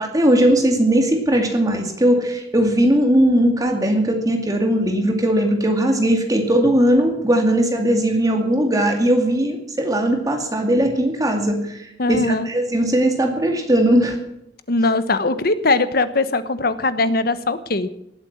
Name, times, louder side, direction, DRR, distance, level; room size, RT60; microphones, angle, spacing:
voice 1, 0.0-14.2, right 1 dB, 20° right, 3 dB, 2.4 m, -18 dB
voice 2, 12.0-12.5 14.7-17.9, left 3 dB, 55° left, 13 dB, 1.2 m, -20 dB
19.0 x 8.9 x 7.4 m, 0.78 s
head